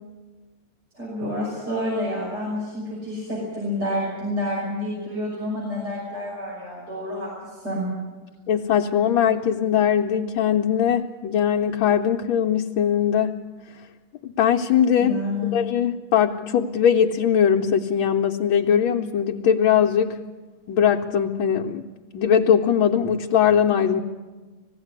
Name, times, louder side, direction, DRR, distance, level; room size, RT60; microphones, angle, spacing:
voice 1, 0.9-7.8 15.0-15.5, left 1 dB, 50° right, -6 dB, 6.6 m, -29 dB
voice 2, 8.5-13.4 14.2-15.2 15.5-20.2 20.7-21.8 22.1-24.0, left 8 dB, 80° left, 1 dB, 1.6 m, -20 dB
20.0 x 16.0 x 9.5 m, 1.3 s
omnidirectional pair, 2.2 m